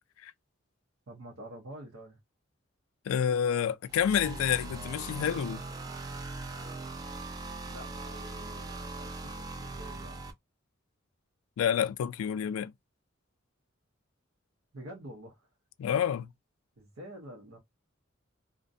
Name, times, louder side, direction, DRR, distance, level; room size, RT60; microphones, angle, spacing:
voice 1, 1.1-2.2 7.6-10.3 14.7-15.5 16.8-17.6, right 1 dB, 70° right, 0.7 m, -47 dB
voice 2, 3.1-5.6 11.6-12.7 15.8-16.3, left 8 dB, 85° left, 0.3 m, -28 dB
sound 1, 3.9-10.3, right 3 dB, 20° right, 0.3 m, -40 dB
2.5 x 2.1 x 2.5 m
head